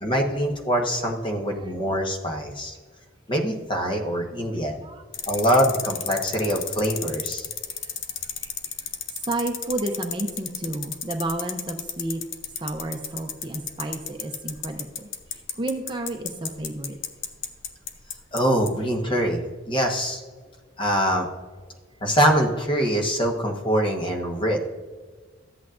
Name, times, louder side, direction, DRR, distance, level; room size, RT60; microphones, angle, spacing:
voice 1, 0.0-2.8 3.3-4.8 5.3-7.5 18.3-19.4 19.7-20.2 20.8-21.3 22.0-24.7, equal, 25° left, 2 dB, 1.1 m, -24 dB
sound 1, 5.1-18.4 18.7-18.8, left 8 dB, 75° left, 0.8 m, -31 dB
voice 2, 9.2-12.2 12.6-17.0, right 2 dB, 25° right, 4 dB, 0.6 m, -31 dB
13.5 x 8.3 x 2.5 m, 1.4 s
head